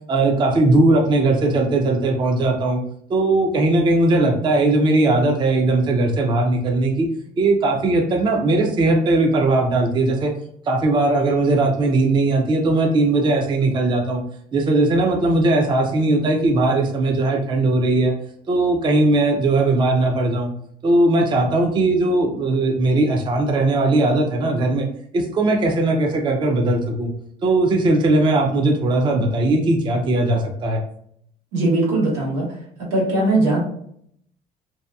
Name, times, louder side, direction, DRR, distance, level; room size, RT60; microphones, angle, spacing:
voice 1, 0.1-2.8 3.1-7.1 7.4-10.3 10.7-14.2 14.5-18.1 18.5-20.5 20.8-24.9 25.1-27.1 27.4-30.8, right 2 dB, 30° right, 2 dB, 0.4 m, -19 dB
voice 2, 31.5-32.5 32.9-33.6, right 2 dB, 85° right, -5 dB, 1.3 m, -19 dB
2.7 x 2.5 x 2.2 m, 0.68 s
cardioid pair, 110°, 17 cm